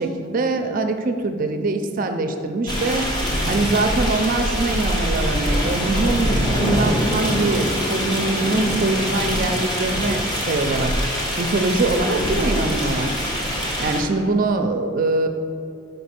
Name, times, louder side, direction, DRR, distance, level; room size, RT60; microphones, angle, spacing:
voice 1, 0.0-3.1 3.5-10.9 11.4-13.2 13.8-15.3, right 2 dB, 45° right, 6 dB, 0.4 m, -23 dB
sound 1, 2.7-14.0, equal, 20° left, 1.2 m, -23 dB
5.3 x 5.2 x 5.8 m, 2.5 s
head